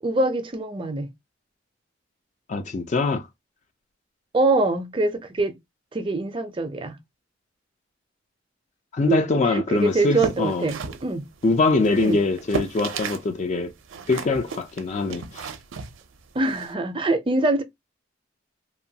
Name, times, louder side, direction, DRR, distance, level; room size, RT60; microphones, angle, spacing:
voice 1, 0.0-1.1 4.3-5.6 5.9-7.0 9.1-11.3 12.0-12.2 16.3-17.6, right 2 dB, 25° right, 0.4 m, -24 dB
voice 2, 2.5-3.3 8.9-10.7 11.4-13.7 14.1-15.5, left 3 dB, 35° left, 0.4 m, -23 dB
sound 1, 10.0-13.3 13.6-16.7, right 5 dB, 85° right, 0.5 m, -34 dB
2.9 x 2.2 x 2.7 m
head